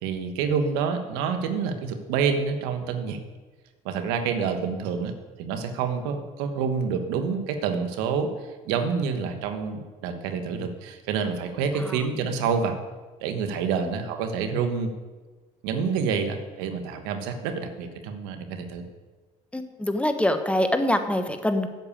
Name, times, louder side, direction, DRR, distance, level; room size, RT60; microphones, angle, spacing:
voice 1, 0.0-3.2 3.8-5.1 5.4-8.3 8.6-12.8 13.2-14.9 15.6-18.8, right 6 dB, 85° right, 7 dB, 1.2 m, -27 dB
voice 2, 19.5-21.7, left 1 dB, 5° left, 7 dB, 1.1 m, -25 dB
8.1 x 6.8 x 8.5 m, 1.3 s
supercardioid pair, 75°, 16 cm